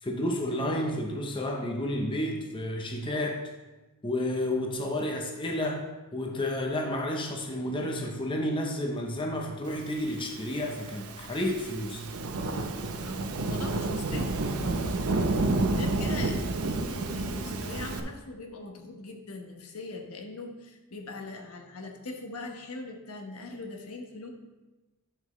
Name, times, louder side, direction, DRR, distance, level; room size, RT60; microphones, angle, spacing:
voice 1, 0.0-3.5 4.0-12.0, left 1 dB, 20° left, 1 dB, 0.7 m, -31 dB
Thunderstorm / Rain, 10.3-18.0, right 2 dB, 80° right, 0.7 m, -30 dB
voice 2, 13.0-14.4 15.7-24.3, left 2 dB, 75° left, 3 dB, 1.1 m, -41 dB
11.0 x 5.5 x 3.2 m, 1.1 s
head